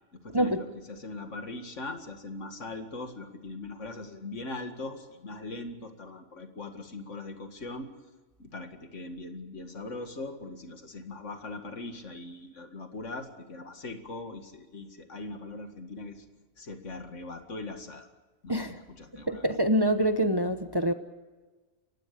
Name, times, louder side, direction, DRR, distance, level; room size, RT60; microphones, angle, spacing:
voice 1, 0.2-7.9 8.4-16.2 16.6-18.1 18.4-19.5, left 2 dB, 75° left, 6 dB, 2.3 m, -40 dB
voice 2, 19.3-20.9, equal, 20° right, 8 dB, 0.9 m, -25 dB
29.0 x 15.5 x 6.8 m, 1.3 s
omnidirectional pair, 1.3 m